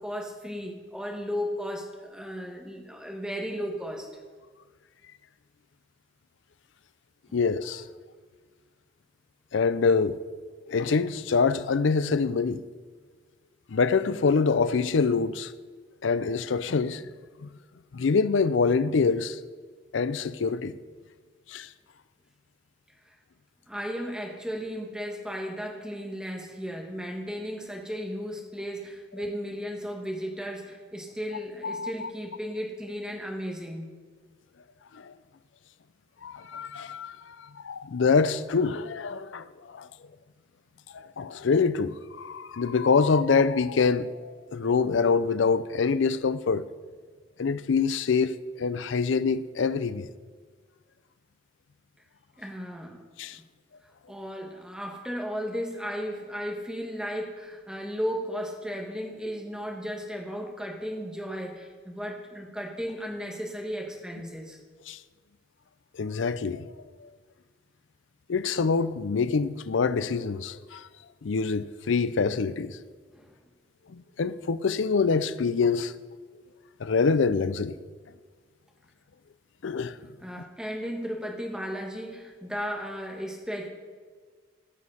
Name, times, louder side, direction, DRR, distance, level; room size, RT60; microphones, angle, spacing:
voice 1, 0.0-4.1 7.3-7.4 23.1-23.2 23.7-33.9 52.4-53.4 54.1-64.6 73.1-73.4 80.2-83.7, equal, 5° right, 1.5 m, -35 dB
voice 2, 7.3-7.8 9.5-10.2 10.7-12.6 13.7-15.5 16.0-17.0 17.4-17.5 17.9-19.4 19.9-20.8 21.5-21.7 31.6-32.1 34.9-35.1 36.2-39.9 40.9-46.7 47.4-50.1 53.2-53.4 64.9-65.0 65.9-66.6 67.0-67.1 68.3-70.9 71.2-72.8 73.9-75.9 76.8-77.8 79.6-80.0, left 5 dB, 75° left, 0.5 m, -25 dB
17.5 x 6.3 x 5.6 m
head